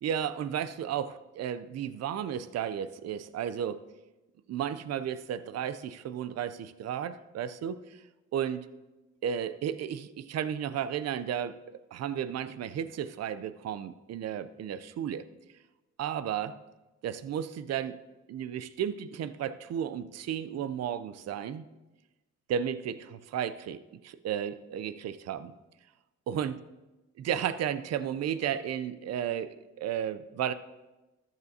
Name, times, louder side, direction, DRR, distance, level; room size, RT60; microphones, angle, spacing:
voice 1, 0.0-3.8 4.5-8.0 8.3-8.7 9.2-15.2 16.0-16.6 17.0-18.0 18.3-21.7 22.5-25.5 26.3-26.6 27.2-30.5, right 9 dB, 55° right, 14 dB, 0.6 m, -33 dB
14.0 x 11.0 x 2.8 m, 1.1 s
cardioid pair, 90°, 30 cm